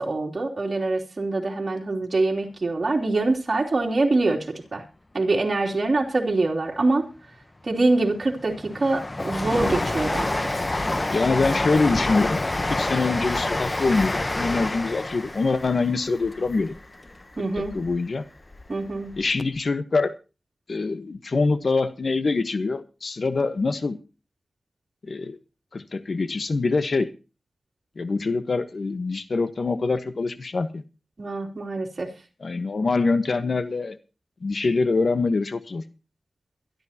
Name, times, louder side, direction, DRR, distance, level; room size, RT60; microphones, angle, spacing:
voice 1, 0.0-4.8 5.1-7.1 7.6-10.6 17.4-17.7 18.7-19.1 31.2-32.1, right 2 dB, 55° right, -1 dB, 3.1 m, -24 dB
Train, 7.8-18.0 18.4-19.3 19.5-19.6, left 2 dB, 35° left, 1.0 m, -28 dB
voice 2, 11.1-12.4 12.7-16.7 17.6-18.2 19.2-20.1 20.7-24.0 25.0-25.4 25.7-27.1 28.0-30.8 32.4-34.0 34.4-35.8, left 3 dB, 65° left, 12 dB, 1.2 m, -24 dB
23.0 x 12.0 x 2.9 m, 0.31 s
cardioid pair, 50°, 0 cm